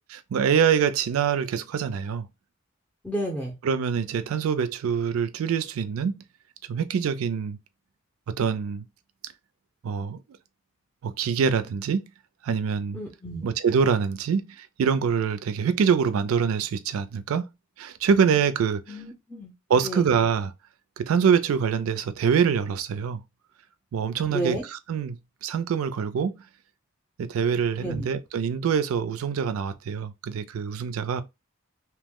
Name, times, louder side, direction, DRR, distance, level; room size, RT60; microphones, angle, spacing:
voice 1, 0.1-2.3 3.6-6.2 6.7-7.6 8.4-8.8 9.8-10.2 11.0-12.1 12.4-13.0 13.4-17.5 17.8-19.0 19.7-20.5 21.0-23.2 23.9-25.2 25.4-26.3 27.2-31.2, right 6 dB, 80° right, 0.3 m, -25 dB
voice 2, 3.0-3.5 12.9-13.5 18.9-19.5 19.8-20.1 24.3-24.6 27.8-28.1, right 1 dB, 5° left, 0.5 m, -31 dB
2.8 x 2.0 x 3.5 m
head